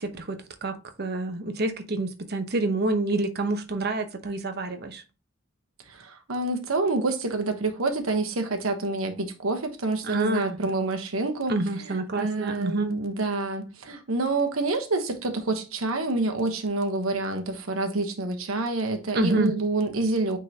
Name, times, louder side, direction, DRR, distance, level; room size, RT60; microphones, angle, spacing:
voice 1, 0.0-5.0 10.0-10.7 11.5-12.9 19.1-19.5, right 2 dB, 50° right, 0.9 m, -28 dB
voice 2, 5.9-11.5 11.8-20.4, right 2 dB, 80° right, 1.1 m, -27 dB
8.9 x 3.8 x 2.8 m
head